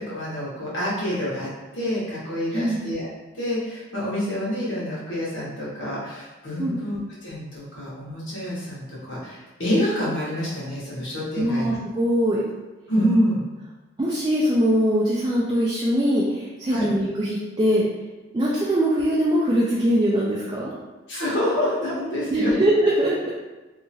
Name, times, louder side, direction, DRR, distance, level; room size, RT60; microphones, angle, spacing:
voice 1, 0.0-3.1 3.3-11.8 12.9-13.4 16.7-16.9 21.1-22.5, equal, 80° left, -8 dB, 1.1 m, -27 dB
voice 2, 2.5-2.8 6.6-6.8 11.4-12.4 14.0-17.8 18.3-20.7 22.3-23.3, equal, 20° right, -6 dB, 0.3 m, -22 dB
2.8 x 2.4 x 2.7 m, 1.1 s
head